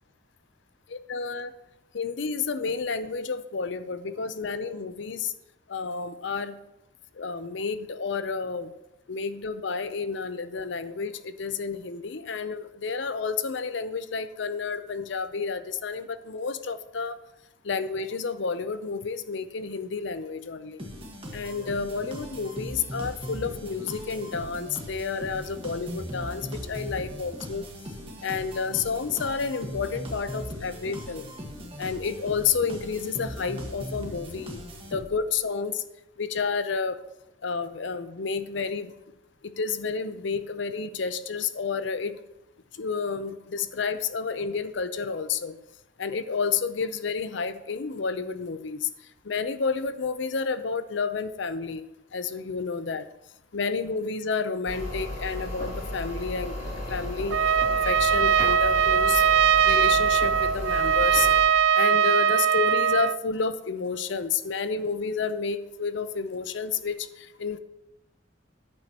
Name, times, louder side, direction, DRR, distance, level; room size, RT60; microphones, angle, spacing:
voice 1, 0.9-1.5 1.9-5.3 5.7-6.6 7.2-8.7 9.1-17.2 17.6-20.9 21.3-27.6 28.2-31.3 31.8-34.6 34.9-35.8 36.2-37.0 37.4-38.9 39.4-42.2 42.7-45.6 46.0-48.9 49.2-53.1 53.5-56.6 56.9-57.4 57.7-59.2 59.6-61.3 61.7-67.6, left 5 dB, 70° left, 12 dB, 0.6 m, -30 dB
sound 1, 20.8-35.4, equal, 30° right, 1.5 m, -39 dB
sound 2, 54.6-61.4, left 1 dB, 50° left, 3.5 m, -34 dB
Trumpet, 57.3-63.2, right 8 dB, 80° right, 0.3 m, -21 dB
14.0 x 9.1 x 2.9 m, 0.91 s
head